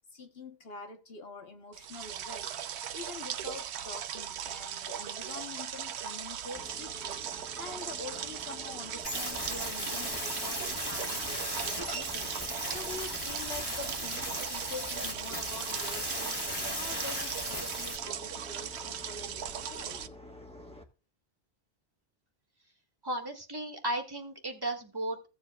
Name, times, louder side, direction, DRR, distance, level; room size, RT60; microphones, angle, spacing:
voice 1, 0.1-2.5 2.9-16.4 16.7-20.1, left 4 dB, 65° left, 1.3 m, -46 dB
sound 1, 1.7-20.1, right 9 dB, 85° right, 0.9 m, -39 dB
sound 2, 6.6-20.8, left 1 dB, 5° left, 1.0 m, -50 dB
sound 3, 9.0-18.0, left 1 dB, 20° left, 2.4 m, -37 dB
voice 2, 23.0-25.3, right 1 dB, 20° right, 1.5 m, -35 dB
16.0 x 7.3 x 2.3 m
omnidirectional pair, 1.1 m